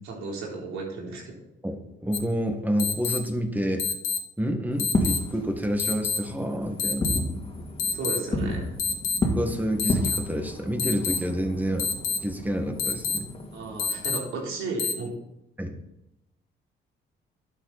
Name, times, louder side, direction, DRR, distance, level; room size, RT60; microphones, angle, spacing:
voice 1, 0.0-1.3 7.9-8.7 13.5-15.2, right 3 dB, 90° right, -2 dB, 3.8 m, -34 dB
voice 2, 1.6-3.9 4.4-7.2 9.2-11.9 12.2-13.3 15.6-15.7, equal, 10° right, 5 dB, 1.9 m, -28 dB
sound 1, 2.1-2.2 2.8-3.2 3.8-4.2 4.8-5.2 5.8-6.2 6.8-7.2 7.8-8.2 8.8-9.2 9.8-10.2 10.8-11.2 11.8-12.2 12.8-13.2 13.8-14.2 14.8-14.9, left 5 dB, 80° left, 1.6 m, -26 dB
Fireworks, 4.8-14.0, left 1 dB, 30° left, 2.5 m, -32 dB
11.5 x 9.0 x 4.2 m, 0.84 s
cardioid pair, 90°, 20 cm